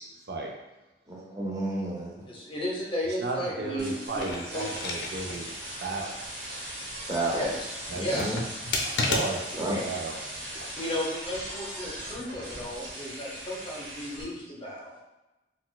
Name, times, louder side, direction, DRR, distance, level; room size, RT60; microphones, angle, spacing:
voice 1, 1.1-2.2 7.1-7.5 7.9-8.4 8.7-8.9 9.6-9.8, right 1 dB, 20° right, -3 dB, 0.7 m, -31 dB
voice 2, 2.3-4.7 7.3-8.3 10.8-15.0, equal, 30° left, -3 dB, 0.7 m, -34 dB
voice 3, 3.2-5.6 5.8-6.1 7.9-8.4 8.8-10.2, right 3 dB, 65° right, 0 dB, 0.5 m, -34 dB
sound 1, 3.8-14.2, right 1 dB, 80° right, 1.2 m, -39 dB
sound 2, 4.1-5.5 5.9-6.0 7.9-9.7 10.5-11.0, left 2 dB, 70° left, 0.5 m, -32 dB
4.1 x 2.2 x 2.3 m, 1.0 s
head